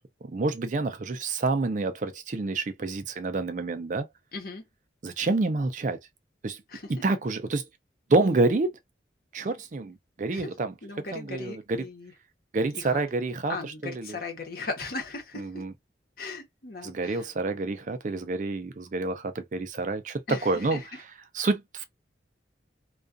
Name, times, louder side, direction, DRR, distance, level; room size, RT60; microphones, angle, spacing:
voice 1, 0.2-4.1 5.0-6.0 6.4-6.6 6.9-7.7 8.1-8.8 9.3-10.7 11.1-11.8 12.5-13.6 13.8-14.1 15.4-15.7 16.8-20.8 21.3-21.8, right 3 dB, 45° right, 0.4 m, -28 dB
voice 2, 4.3-4.6 6.7-6.9 10.3-10.5 10.8-12.1 12.7-13.0 13.5-15.6 16.2-17.3 20.3-21.0, left 3 dB, 55° left, 0.9 m, -37 dB
2.4 x 2.3 x 2.4 m
head